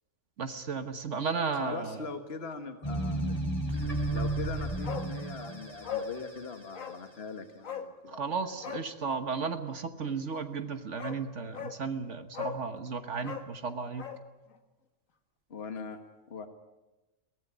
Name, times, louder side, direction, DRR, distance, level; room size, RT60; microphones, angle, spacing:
voice 1, 0.4-2.1 8.1-14.1, right 5 dB, 65° right, 8 dB, 1.6 m, -34 dB
voice 2, 1.5-3.4 4.1-8.5 15.5-16.0 16.3-16.5, left 4 dB, 50° left, 7 dB, 1.8 m, -41 dB
sound 1, 2.8-7.2, right 1 dB, 20° left, 6.4 m, -33 dB
Bark, 4.8-5.1 5.4-5.5 5.8-6.1 6.7-7.0 7.6-7.9 8.6-8.9 10.5-10.6 11.0-11.2 11.5-11.8 12.3-12.6 13.2-14.2 14.5-14.6, left 7 dB, 80° left, 2.0 m, -38 dB
22.5 x 18.5 x 10.0 m, 1.1 s
omnidirectional pair, 1.4 m